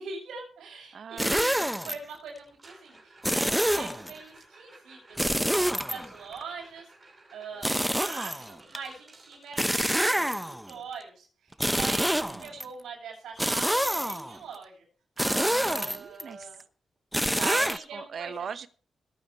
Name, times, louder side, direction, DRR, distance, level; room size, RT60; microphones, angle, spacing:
voice 1, 0.0-6.9 7.3-14.8 15.6-16.6 17.3-18.5, right 5 dB, 85° right, 0 dB, 7.7 m, -42 dB
voice 2, 0.9-1.5 11.7-12.6 15.2-16.5 17.2-18.7, right 7 dB, 65° right, 14 dB, 1.0 m, -40 dB
sound 1, 1.2-1.9 3.2-4.1 5.2-6.4 7.6-8.8 9.6-10.7 11.5-12.6 13.4-14.4 15.2-16.2 17.1-17.8, equal, 5° right, 1.0 m, -27 dB
sound 2, 2.5-10.5 12.7-12.8 13.1-13.4 13.8-13.9 14.5-14.6 16.5-16.6, right 2 dB, 35° right, 5.5 m, -55 dB
22.0 x 9.0 x 3.2 m, 0.42 s
cardioid pair, 65°, 0 cm